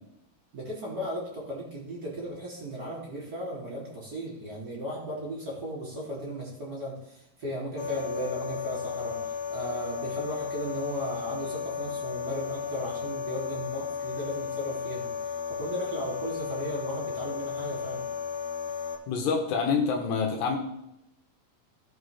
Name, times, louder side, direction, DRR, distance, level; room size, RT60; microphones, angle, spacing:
voice 1, 0.5-15.1 15.5-18.1, equal, 25° right, -5 dB, 3.7 m, -36 dB
sound 1, 7.8-19.0, left 7 dB, 55° left, 3.2 m, -34 dB
voice 2, 19.1-20.6, left 5 dB, 75° left, 2 dB, 3.3 m, -26 dB
17.5 x 6.5 x 3.7 m, 0.83 s
omnidirectional pair, 5.0 m